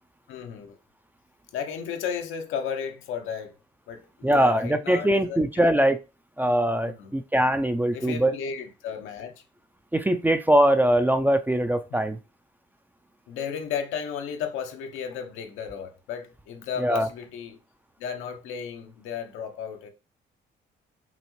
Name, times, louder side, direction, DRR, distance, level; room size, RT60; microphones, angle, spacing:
voice 1, 0.3-0.8 1.5-3.5 3.9-5.7 6.8-7.1 7.9-9.3 11.9-12.0 13.3-17.6 18.0-19.9, left 7 dB, 90° left, 0.8 m, -34 dB
voice 2, 4.2-6.0 6.4-8.3 9.9-12.2 16.8-17.1, right 1 dB, 10° right, 0.3 m, -22 dB
5.7 x 2.1 x 3.0 m
cardioid pair, 90°, 20 cm